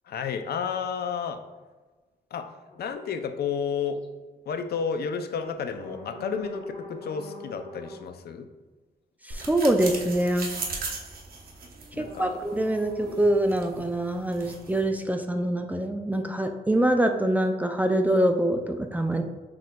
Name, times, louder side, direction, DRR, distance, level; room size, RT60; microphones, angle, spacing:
voice 1, 0.1-1.4 2.3-4.0 4.5-8.5 11.9-12.4, left 6 dB, 75° left, 8 dB, 0.4 m, -31 dB
sound 1, 2.7-2.9 3.9-4.1 5.7-8.1 12.0-14.0, left 1 dB, 35° left, 0.8 m, -43 dB
voice 2, 9.2-10.5 12.0-19.2, right 1 dB, 10° right, 5 dB, 0.3 m, -24 dB
sound 2, 9.3-14.8, right 3 dB, 65° right, 0.8 m, -38 dB
6.1 x 3.7 x 2.2 m, 1.3 s
wide cardioid pair, 140°, 16 cm